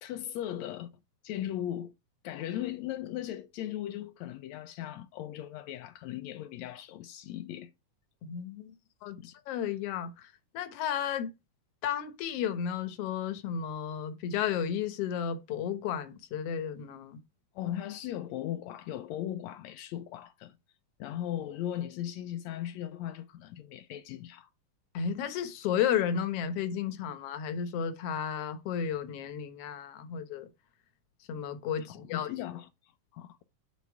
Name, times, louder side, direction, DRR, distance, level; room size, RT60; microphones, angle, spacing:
voice 1, 0.0-0.9 1.2-1.9 2.2-7.7 9.2-9.3 17.5-20.6 21.0-24.5 31.9-33.4, left 12 dB, 85° left, 1.6 m, -38 dB
voice 2, 8.2-8.7 9.0-11.3 11.8-17.2 24.9-30.5 31.3-32.3, left 8 dB, 65° left, 1.7 m, -33 dB
9.3 x 4.1 x 4.6 m
omnidirectional pair, 3.9 m